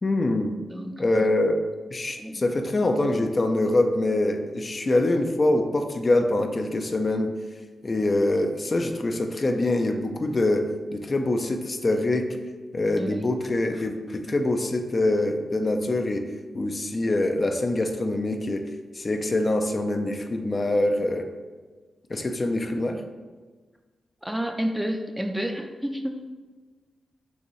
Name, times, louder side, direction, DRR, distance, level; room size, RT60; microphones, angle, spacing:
voice 1, 0.0-0.5 1.0-1.6 1.9-7.3 7.8-12.4 12.7-16.3 16.5-18.7 19.0-21.3 22.1-23.0, left 2 dB, 40° left, 5 dB, 0.5 m, -24 dB
voice 2, 0.7-1.3 2.2-2.5 13.0-13.2 24.2-26.3, equal, 5° right, 5 dB, 0.5 m, -30 dB
6.3 x 2.6 x 3.1 m, 1.4 s
cardioid pair, 55°, 0 cm